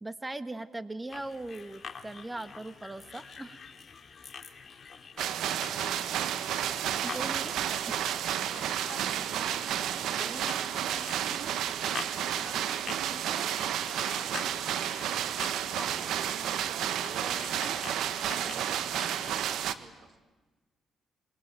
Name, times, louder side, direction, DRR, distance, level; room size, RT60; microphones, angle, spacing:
voice 1, 0.0-3.6 7.0-7.9, right 2 dB, 15° right, 11 dB, 1.5 m, -39 dB
sound 1, 1.1-19.5, left 5 dB, 40° left, 2.7 m, -46 dB
sound 2, 5.2-19.7, right 10 dB, 80° right, 1.3 m, -31 dB
voice 2, 5.5-6.1 8.5-11.6 12.3-14.6 15.4-18.9 19.6-20.2, right 5 dB, 50° right, 8 dB, 3.2 m, -48 dB
26.5 x 23.5 x 9.0 m, 1.3 s
cardioid pair, 90°, 0 cm